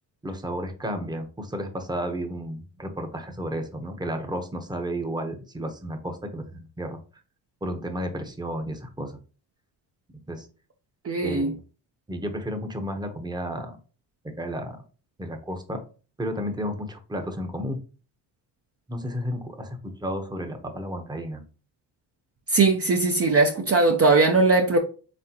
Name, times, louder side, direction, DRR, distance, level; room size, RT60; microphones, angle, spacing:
voice 1, 0.2-7.0 7.6-9.1 10.3-10.5 11.2-11.6 12.1-13.8 14.4-14.8 15.2-15.8 16.2-17.8 18.9-21.4, equal, 10° right, 0.9 m, -32 dB
voice 2, 11.0-11.5 22.5-24.8, right 3 dB, 35° right, 0.7 m, -20 dB
4.2 x 3.6 x 2.9 m
cardioid pair, 75°, 42 cm